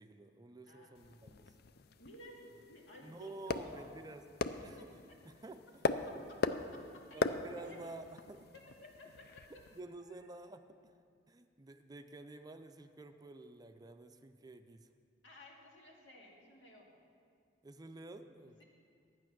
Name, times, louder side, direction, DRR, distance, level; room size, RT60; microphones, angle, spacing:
voice 1, 0.0-1.5 3.0-4.8 5.2-6.0 7.1-8.5 9.5-10.8 11.3-14.9 17.6-18.6, right 2 dB, 20° right, 8 dB, 0.4 m, -51 dB
voice 2, 0.6-1.0 2.0-4.0 4.6-4.9 6.4-7.9 8.5-9.6 10.0-10.5 15.2-17.0 18.6-18.7, left 1 dB, 80° left, -2 dB, 2.1 m, -56 dB
sound 1, 0.9-9.8, left 4 dB, 60° left, 0.4 m, -40 dB
11.5 x 9.5 x 6.0 m, 2.2 s
head